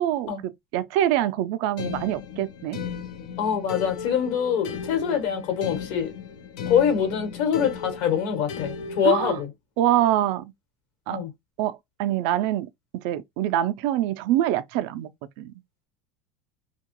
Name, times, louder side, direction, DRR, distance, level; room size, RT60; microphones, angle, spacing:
voice 1, 0.0-2.8 9.0-9.4 9.8-10.5 11.1-11.2 11.6-15.1 15.4-15.5, right 12 dB, 55° right, 0.3 m, -25 dB
sound 1, 1.8-9.4, left 6 dB, 90° left, 0.6 m, -36 dB
voice 2, 3.4-6.1 6.7-9.5 11.1-11.3, left 8 dB, 60° left, 1.1 m, -24 dB
2.7 x 2.2 x 2.9 m
cardioid pair, 170°, 3 cm